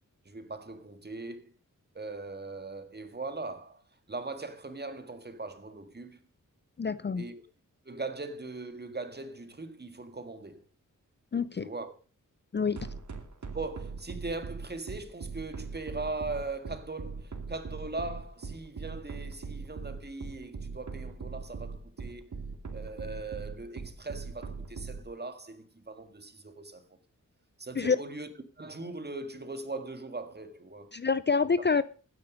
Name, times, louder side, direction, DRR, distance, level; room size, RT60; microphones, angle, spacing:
voice 1, 0.3-1.5 1.9-3.8 4.1-6.2 7.2-7.4 7.9-10.7 11.6-11.9 13.5-22.3 22.7-26.8 27.6-28.3 28.6-30.9, right 3 dB, 30° right, 1.9 m, -40 dB
voice 2, 6.8-7.2 11.3-11.7 12.5-12.8 27.8-28.0 30.9-31.8, left 5 dB, 35° left, 0.5 m, -27 dB
sound 1, 12.8-25.0, right 4 dB, 65° right, 2.4 m, -39 dB
15.5 x 9.7 x 5.2 m
wide cardioid pair, 130°, 32 cm